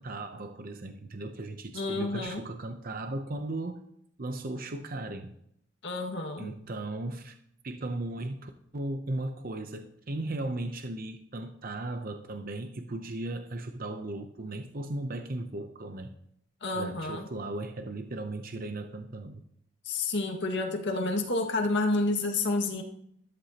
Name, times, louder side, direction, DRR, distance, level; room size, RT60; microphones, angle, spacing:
voice 1, 0.0-3.8 4.2-5.3 6.4-7.4 7.6-16.1 16.7-19.4, right 2 dB, 45° right, 7 dB, 0.7 m, -36 dB
voice 2, 1.7-2.4 5.8-6.5 16.6-17.3 19.9-22.8, left 2 dB, 60° left, 2 dB, 2.0 m, -29 dB
14.0 x 13.0 x 2.9 m, 0.70 s
head